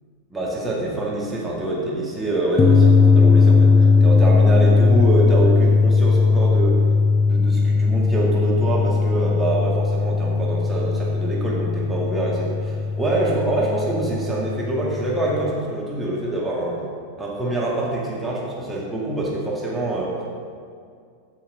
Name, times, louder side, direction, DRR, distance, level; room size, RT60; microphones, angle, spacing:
voice 1, 0.3-6.8 7.2-16.8 17.2-20.1, right 2 dB, 5° right, -5 dB, 1.9 m, -25 dB
sound 1, 2.6-15.5, left 4 dB, 20° left, 0.5 m, -18 dB
13.5 x 5.7 x 5.3 m, 2.2 s
figure-of-eight pair, 90°, 0 cm